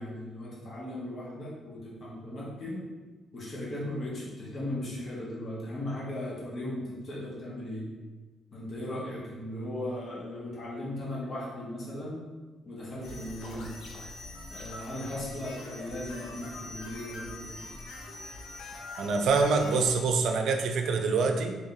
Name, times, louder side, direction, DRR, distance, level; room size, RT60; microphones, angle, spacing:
voice 1, 0.0-2.8 3.3-7.9 8.5-12.3 12.6-13.7 14.5-17.5, left 1 dB, 50° left, -6 dB, 1.3 m, -37 dB
sound 1, 13.0-20.0, left 2 dB, 85° left, 0.6 m, -43 dB
voice 2, 19.0-21.6, right 4 dB, 75° right, 4 dB, 0.4 m, -25 dB
3.6 x 3.4 x 2.7 m, 1.3 s
cardioid pair, 90°, 0 cm